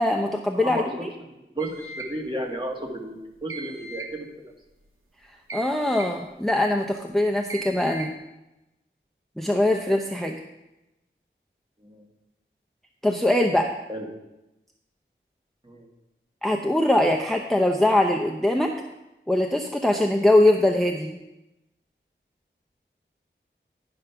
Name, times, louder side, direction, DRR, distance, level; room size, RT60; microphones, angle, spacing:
voice 1, 0.0-1.1 5.5-8.1 9.4-10.4 13.0-13.8 16.4-18.7 19.3-21.2, left 1 dB, ahead, 2 dB, 0.7 m, -22 dB
voice 2, 0.5-0.9 1.3-4.5 11.8-12.0 13.9-14.1 15.6-15.9, right 1 dB, 25° right, 0 dB, 1.8 m, -33 dB
sound 1, 1.6-2.2 3.5-4.2 5.5-6.2 7.5-8.1, right 3 dB, 90° right, 1.1 m, -38 dB
10.5 x 5.3 x 5.8 m, 0.96 s
wide cardioid pair, 45°, 21 cm